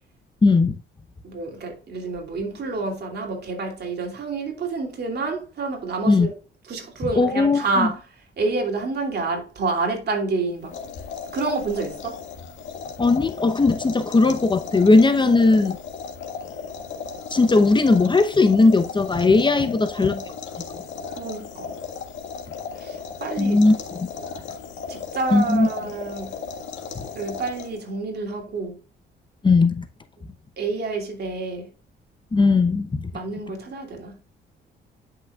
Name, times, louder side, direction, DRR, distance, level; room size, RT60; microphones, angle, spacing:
voice 1, 0.4-0.7 6.1-6.3 7.2-7.9 13.0-15.8 17.3-20.3 23.4-23.7 25.3-25.7 29.4-29.8 32.3-33.1, left 3 dB, 25° left, 0.8 m, -18 dB
voice 2, 1.2-6.3 6.6-8.1 8.4-10.7 11.3-12.2 15.6-15.8 19.6-20.2 21.2-21.7 22.7-23.6 24.9-26.4 27.1-28.8 30.6-31.7 33.1-34.2, right 3 dB, 55° right, 2.9 m, -28 dB
sound 1, 10.6-28.0, left 5 dB, 70° left, 1.7 m, -36 dB
10.5 x 6.0 x 2.4 m
cardioid pair, 90°, 20 cm